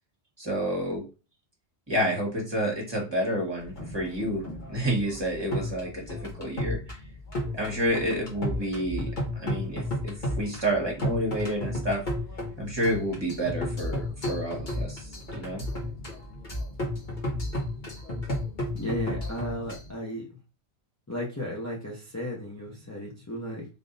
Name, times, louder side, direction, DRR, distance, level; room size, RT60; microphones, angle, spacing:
voice 1, 0.4-1.0 1.9-4.4 4.7-7.0 7.6-12.0 12.6-15.7, right 1 dB, 25° right, 1.5 m, -29 dB
sound 1, 3.6-19.9, left 1 dB, 50° left, 1.4 m, -33 dB
voice 2, 18.7-20.4 21.1-23.6, equal, 15° left, 0.8 m, -34 dB
3.6 x 2.7 x 3.9 m
omnidirectional pair, 1.1 m